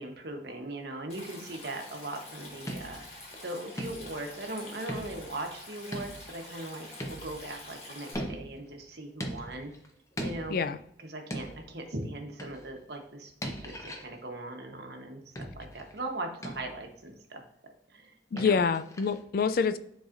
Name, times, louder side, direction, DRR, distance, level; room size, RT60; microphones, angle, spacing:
voice 1, 0.0-9.7 10.2-10.6 11.0-17.4 17.9-18.6, right 2 dB, 60° right, 3 dB, 1.1 m, -40 dB
Stream, 1.1-8.1, left 2 dB, 35° left, 1.7 m, -47 dB
sound 1, 2.7-3.4 3.8-4.5 4.9-5.4 5.9-7.6 8.1-8.7 9.2-9.9 10.2-10.8 11.3-11.8 12.4-12.8 13.4-14.1 15.3-16.0 16.4-16.9 18.4-19.2, equal, 15° left, 0.7 m, -40 dB
voice 2, 18.3-19.8, left 5 dB, 50° left, 12 dB, 0.3 m, -26 dB
9.8 x 4.0 x 2.6 m, 0.72 s
head